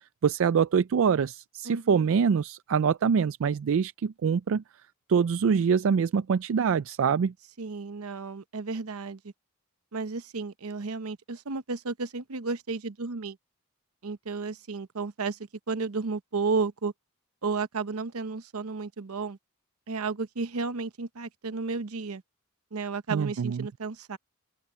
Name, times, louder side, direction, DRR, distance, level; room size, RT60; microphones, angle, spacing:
voice 1, 0.2-4.6 5.1-7.3 23.1-23.7, right 6 dB, 65° right, 0.4 m, -24 dB
voice 2, 1.6-2.2 7.6-9.2 9.9-13.4 14.0-15.4 15.7-16.9 17.4-19.4 19.9-22.2 22.7-24.2, right 4 dB, 85° right, 0.8 m, -33 dB
head